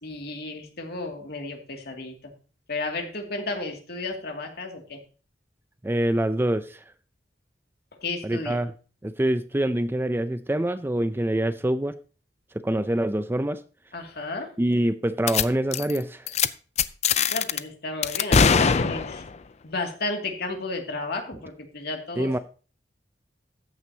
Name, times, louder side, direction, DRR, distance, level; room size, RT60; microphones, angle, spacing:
voice 1, 0.0-2.1 2.7-5.0 8.0-8.6 13.9-14.5 17.3-19.2 19.6-22.4, left 3 dB, 65° left, 2.5 m, -33 dB
voice 2, 5.8-6.8 8.2-8.7 9.0-12.0 12.5-13.6 14.6-16.3 22.2-22.4, right 1 dB, 15° right, 0.5 m, -25 dB
sound 1, 15.3-15.4 15.7-16.0 16.3-16.5 16.8-17.6 18.0-19.4, left 6 dB, 40° left, 0.5 m, -21 dB
13.5 x 9.4 x 2.9 m
head